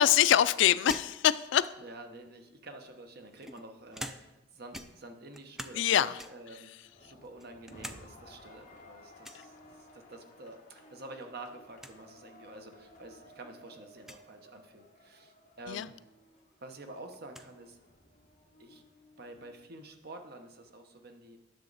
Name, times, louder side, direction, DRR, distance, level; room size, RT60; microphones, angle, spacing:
voice 1, 0.0-1.7 5.8-6.2 15.7-15.9, left 10 dB, 70° left, 16 dB, 0.3 m, -24 dB
sound 1, 0.9-2.0 2.9-4.5 4.7-5.9 6.2-6.6 7.0-8.0 8.3-8.4 9.2-9.5 10.9-11.3 11.5-11.6 11.8-12.0 12.8-12.9 14.0-14.2 15.9-16.0 16.4-17.5, equal, ahead, 0.4 m, -46 dB
voice 2, 1.8-15.9 16.6-17.8 18.6-18.8 19.2-21.4, right 2 dB, 55° right, 5 dB, 1.0 m, -49 dB
sound 2, 6.8-19.5, left 1 dB, 40° left, 1.4 m, -57 dB
10.5 x 6.5 x 4.0 m, 1.0 s
head